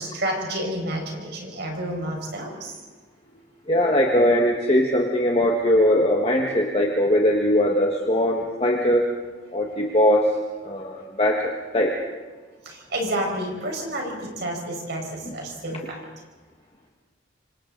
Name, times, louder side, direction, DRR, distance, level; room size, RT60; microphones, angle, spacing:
voice 1, 0.0-2.7 12.7-16.0, right 1 dB, 60° right, 1 dB, 5.2 m, -30 dB
voice 2, 3.7-9.0 9.5-10.3 10.6-11.9 15.3-15.4, left 1 dB, 30° left, 0 dB, 1.6 m, -20 dB
26.5 x 25.5 x 4.0 m, 1.3 s
head